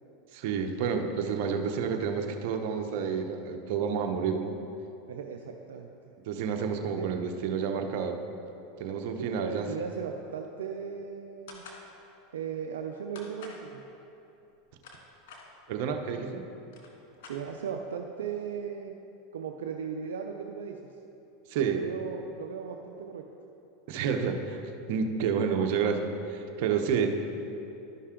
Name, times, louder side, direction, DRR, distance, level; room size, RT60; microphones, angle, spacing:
voice 1, 0.3-4.5 6.3-8.2 8.8-9.7 15.7-16.4 21.5-21.8 23.9-24.6 24.9-27.1, right 6 dB, 65° right, 4 dB, 0.8 m, -29 dB
voice 2, 5.1-6.1 7.0-7.1 9.2-11.6 12.3-13.8 16.2-16.3 17.3-18.9 19.3-20.8 21.7-23.3, right 7 dB, 85° right, 3 dB, 0.5 m, -37 dB
sound 1, 11.5-11.8 13.1-13.6 14.5-15.4 16.3-16.4 16.6-17.8, left 4 dB, 70° left, 1.7 m, -48 dB
12.5 x 5.5 x 3.8 m, 2.8 s
hypercardioid pair, 105°, 0 cm